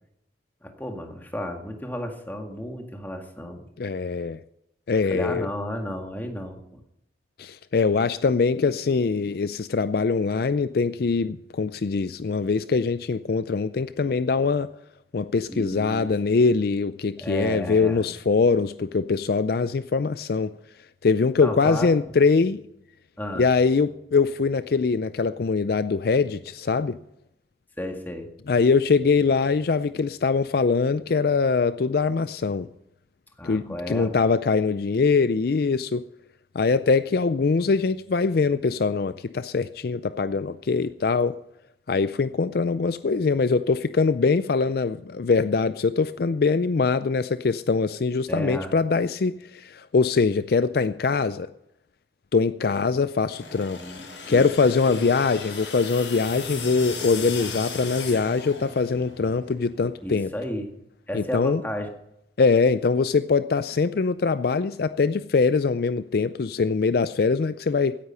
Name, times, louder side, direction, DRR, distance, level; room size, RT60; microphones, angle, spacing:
voice 1, 0.6-3.7 5.1-6.8 15.5-16.1 17.2-18.0 21.4-21.9 23.2-23.4 27.8-28.3 33.4-34.3 48.3-48.7 53.8-54.5 54.8-55.1 60.0-60.7 61.1-61.9, equal, 10° left, 3 dB, 1.9 m, -33 dB
voice 2, 3.8-4.4 4.9-5.5 7.4-14.7 15.1-20.5 21.0-22.6 23.4-27.0 28.5-32.7 33.4-36.0 36.5-41.4 41.9-51.5 52.3-53.8 54.3-60.3 61.1-61.6 62.4-68.0, left 4 dB, 55° left, 13 dB, 0.4 m, -23 dB
sound 1, 53.2-59.1, left 5 dB, 85° left, 4.9 m, -37 dB
sound 2, 56.2-60.7, right 1 dB, 45° right, 3.6 m, -44 dB
16.5 x 10.0 x 5.6 m, 0.82 s
head